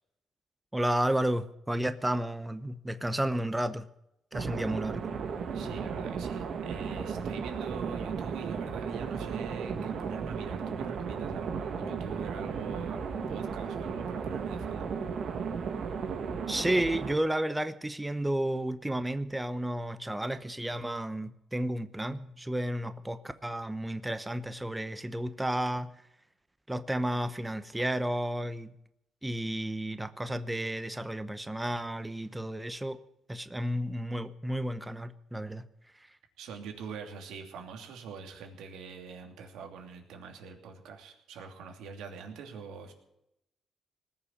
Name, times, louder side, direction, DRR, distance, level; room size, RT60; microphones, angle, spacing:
voice 1, 0.7-3.9 4.3-5.1 16.5-25.9 26.7-28.7 29.2-33.0 33.3-35.7 35.9-36.1, right 1 dB, 10° right, 12 dB, 0.9 m, -32 dB
sound 1, 4.3-17.1, right 6 dB, 60° right, 1.7 m, -35 dB
voice 2, 5.5-14.9 36.4-42.9, right 6 dB, 85° right, 3 dB, 2.8 m, -43 dB
19.5 x 7.0 x 9.9 m, 0.82 s
cardioid pair, 90°, 0 cm